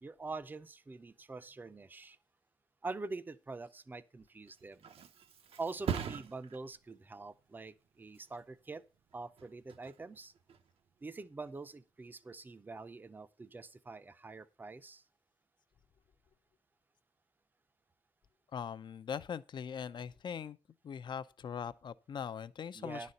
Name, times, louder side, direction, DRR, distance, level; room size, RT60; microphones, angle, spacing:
voice 1, 0.0-2.2 2.8-4.9 5.6-8.8 9.1-10.3 11.0-15.0 22.7-23.1, right 3 dB, 20° right, 0.5 m, -45 dB
Thump thud, 4.3-11.7 12.2-12.6, right 8 dB, 75° right, 0.8 m, -45 dB
voice 2, 18.5-20.6 20.8-23.1, left 7 dB, 50° left, 0.5 m, -41 dB
10.5 x 4.2 x 7.6 m
wide cardioid pair, 160°, 10 cm